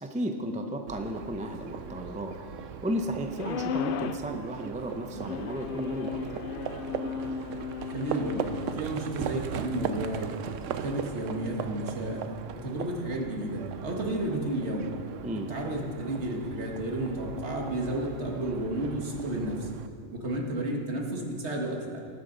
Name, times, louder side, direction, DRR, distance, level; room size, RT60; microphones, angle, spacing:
voice 1, 0.0-2.4 2.8-6.4 15.2-15.5, equal, 10° right, 5 dB, 0.5 m, -34 dB
Livestock farm animals working animals, 0.9-19.9, right 8 dB, 85° right, 1.0 m, -39 dB
sound 1, 3.4-4.3 5.2-8.9, left 7 dB, 60° left, 0.6 m, -35 dB
voice 2, 7.9-8.5 8.7-10.3 10.8-12.2 12.5-14.9 15.5-19.7 20.1-22.0, right 1 dB, 65° right, 0 dB, 1.8 m, -32 dB
19.5 x 8.6 x 4.0 m, 2.5 s
omnidirectional pair, 1.3 m